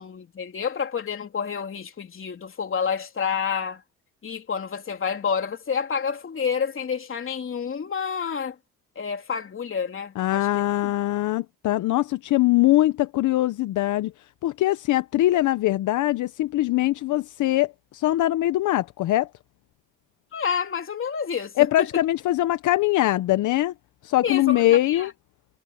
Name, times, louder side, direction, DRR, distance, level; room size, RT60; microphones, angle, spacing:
voice 1, 0.0-3.8 4.2-8.5 8.9-10.5 10.8-10.9 20.3-21.9 24.2-25.1, left 6 dB, 45° left, 3.3 m, -29 dB
voice 2, 10.2-14.1 14.4-19.3 21.6-23.7 24.0-25.1, left 15 dB, 80° left, 0.8 m, -22 dB
cardioid pair, 90°, 30 cm